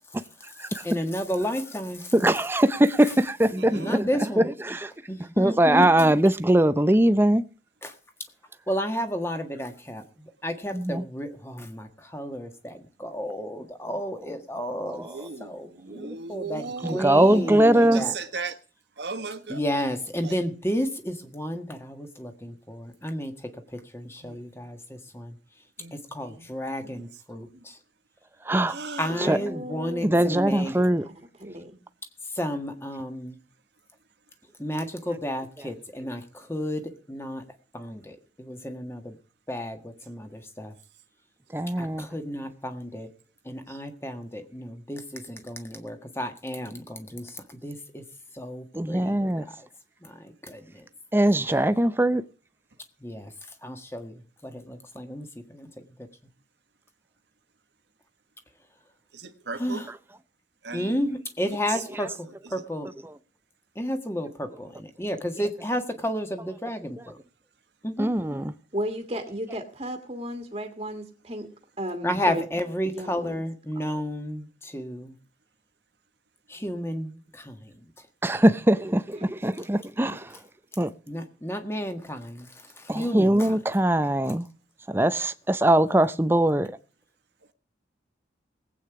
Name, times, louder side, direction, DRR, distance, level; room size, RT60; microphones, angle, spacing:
voice 1, 0.7-2.1 3.7-4.5 5.1-5.8 7.8-7.9 8.7-10.0 10.4-15.0 15.4-16.6 16.9-18.1 19.5-23.3 23.7-25.4 26.1-27.8 29.0-30.7 32.3-33.4 34.6-37.4 37.7-39.1 39.5-40.7 41.8-43.1 43.4-48.0 48.3-49.7 50.0-50.8 53.0-53.3 53.6-55.7 59.6-59.8 60.7-62.9 63.7-67.2 67.8-68.1 72.0-75.1 76.5-77.7 81.1-82.5 82.8-83.5, equal, 15° left, 1.6 m, -32 dB
voice 2, 2.1-4.9 5.4-7.4 10.7-11.1 14.8-15.3 16.8-18.2 28.5-28.8 29.2-29.4 30.0-31.1 41.5-42.1 48.7-49.5 51.1-52.2 61.9-62.0 63.0-63.1 68.0-68.5 78.2-80.4 80.8-80.9 82.9-84.5 84.9-86.7, right 1 dB, 10° right, 0.6 m, -21 dB
voice 3, 3.6-4.0 15.0-18.6 19.0-19.8 20.2-20.3 24.2-24.4 25.8-26.5 26.8-27.6 28.7-29.2 43.7-43.8 59.1-59.9 60.6-61.0 61.4-62.6, right 4 dB, 70° right, 1.4 m, -37 dB
voice 4, 29.1-30.2 30.6-31.8 68.7-71.5 71.8-72.5 72.8-73.4 73.8-73.9 79.1-79.3, equal, 30° right, 1.7 m, -35 dB
19.0 x 8.7 x 4.8 m
head